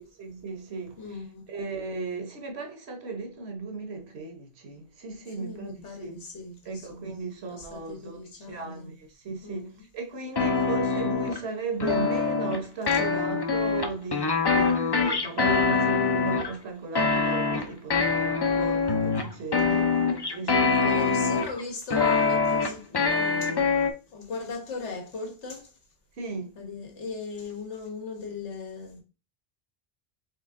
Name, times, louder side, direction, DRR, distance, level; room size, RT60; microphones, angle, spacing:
voice 1, 0.0-1.2 1.5-6.2 6.6-21.4 26.2-26.6, right 4 dB, 65° right, 1.3 m, -36 dB
voice 2, 1.0-1.4 5.4-7.1 7.5-9.0 9.4-9.7 12.9-13.0 20.6-23.8 24.1-25.7 26.6-29.0, left 4 dB, 85° left, 1.5 m, -38 dB
sound 1, 10.4-11.4 11.8-12.6 12.9-16.5 17.0-21.6 21.9-23.9, left 4 dB, 35° left, 0.4 m, -24 dB
4.3 x 3.4 x 3.6 m
omnidirectional pair, 1.2 m